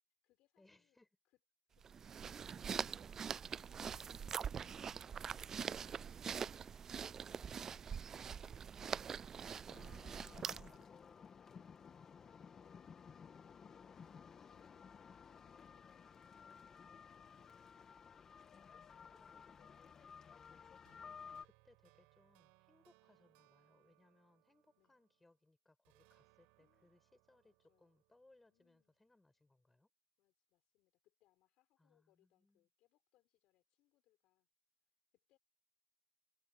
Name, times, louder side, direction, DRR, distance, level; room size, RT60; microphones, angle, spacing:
voice 1, 0.0-1.0 1.2-1.4 18.7-20.3 24.8-25.0 26.6-27.0 27.4-28.0 28.5-29.0 30.2-34.5 34.8-35.4, left 17 dB, 50° left, 6.3 m, -79 dB
voice 2, 0.6-1.1 5.2-6.0 19.1-19.6 21.0-29.9 31.8-32.7, left 2 dB, 5° left, 6.4 m, -71 dB
sound 1, 1.8-10.8, right 7 dB, 20° right, 0.4 m, -44 dB
sound 2, 9.7-21.4, left 6 dB, 20° left, 1.9 m, -56 dB
sound 3, 20.9-25.4 25.9-28.9, right 29 dB, 60° right, 6.1 m, -73 dB
supercardioid pair, 145°, 2 cm